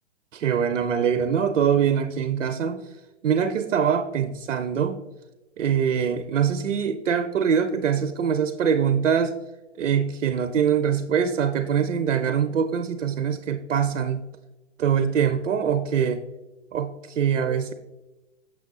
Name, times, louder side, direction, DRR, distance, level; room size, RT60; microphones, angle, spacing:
voice 1, 0.3-2.9 3.2-5.0 5.6-9.3 9.8-14.3 14.8-16.2 16.7-17.7, right 7 dB, 85° right, 9 dB, 0.5 m, -23 dB
6.7 x 6.0 x 2.4 m, 1.1 s
figure-of-eight pair, 125°, 37 cm